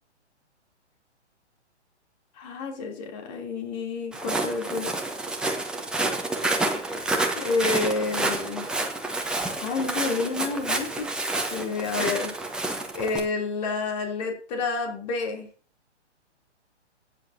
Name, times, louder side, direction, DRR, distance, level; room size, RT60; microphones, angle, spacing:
voice 1, 2.4-4.9 7.4-8.7 9.6-11.1 11.5-12.3 12.9-15.5, left 4 dB, 35° left, 1 dB, 3.0 m, -29 dB
Walk footsteps, 4.1-13.2, right 2 dB, ahead, 0.8 m, -29 dB
16.5 x 9.4 x 2.7 m, 0.40 s
figure-of-eight pair, 125°, 35 cm